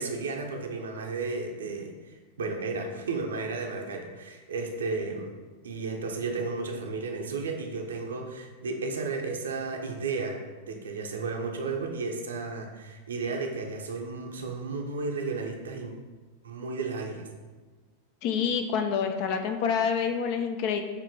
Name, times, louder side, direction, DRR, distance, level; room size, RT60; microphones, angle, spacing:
voice 1, 0.0-1.9 2.4-5.3 5.6-15.9 16.4-17.3, right 4 dB, 65° right, 2 dB, 0.8 m, -33 dB
voice 2, 18.2-20.8, left 6 dB, 45° left, 7 dB, 0.6 m, -27 dB
6.7 x 3.0 x 4.7 m, 1.4 s
figure-of-eight pair, 90°, 0 cm